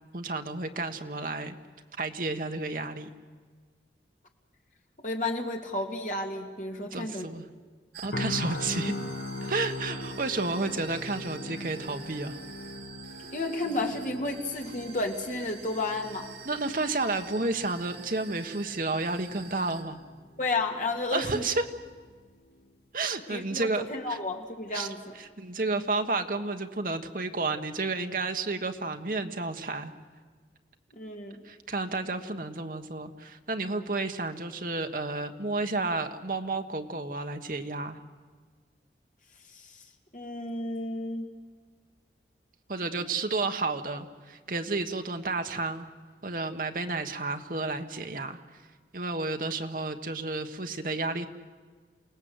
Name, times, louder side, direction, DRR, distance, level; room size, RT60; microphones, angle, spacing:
voice 1, 0.1-1.5 2.0-3.1 6.9-7.5 8.0-8.9 9.4-12.4 16.4-20.0 21.1-21.6 22.9-24.2 24.7-24.9 25.1-29.9 31.4-38.0 42.7-45.9 46.2-48.4 48.9-51.3, right 3 dB, 50° right, 6 dB, 1.2 m, -31 dB
voice 2, 5.0-7.3 13.3-16.3 20.4-21.5 23.3-25.1 30.9-31.4 39.6-39.7 40.1-41.3, left 2 dB, 45° left, 2 dB, 2.3 m, -32 dB
sound 1, 7.9-19.8, right 6 dB, 75° right, 3.1 m, -47 dB
sound 2, 8.1-22.1 22.5-22.7, left 2 dB, 65° left, 1.0 m, -41 dB
28.0 x 18.5 x 7.9 m, 1.5 s
head